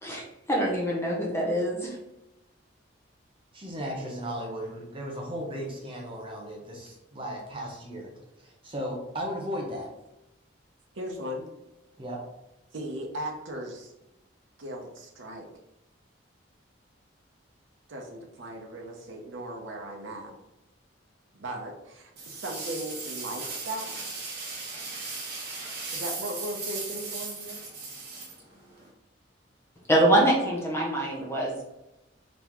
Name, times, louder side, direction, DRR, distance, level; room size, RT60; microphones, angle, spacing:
voice 1, 0.5-2.0 29.9-31.6, right 1 dB, 15° left, -3 dB, 0.7 m, -24 dB
voice 2, 3.5-8.1 8.4-9.9 12.0-12.2, equal, 25° right, -1 dB, 0.8 m, -36 dB
voice 3, 10.9-11.5 12.7-13.9 14.6-15.5 17.9-20.3 21.3-24.0 25.9-27.6, right 1 dB, 75° right, 1 dB, 0.7 m, -37 dB
sound 1, 22.2-28.9, right 4 dB, 50° right, 0.9 m, -37 dB
4.1 x 3.4 x 3.0 m, 0.94 s
head